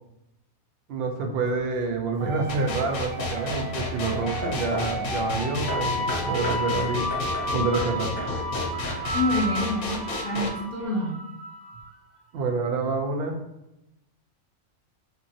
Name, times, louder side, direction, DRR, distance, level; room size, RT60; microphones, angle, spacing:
voice 1, 0.9-7.0 7.5-8.1 12.3-13.4, right 4 dB, 70° right, 3 dB, 0.5 m, -27 dB
Hammer / Wood, 1.5-1.9 2.6-5.0 5.7-9.3, equal, 10° left, 0.8 m, -36 dB
sound 1, 2.2-11.9, equal, 45° right, 1.3 m, -32 dB
sound 2, 2.5-10.5, left 4 dB, 80° left, 1.0 m, -32 dB
voice 2, 9.1-11.2, left 2 dB, 60° left, -5 dB, 0.6 m, -27 dB
2.8 x 2.4 x 2.6 m, 0.88 s
omnidirectional pair, 1.5 m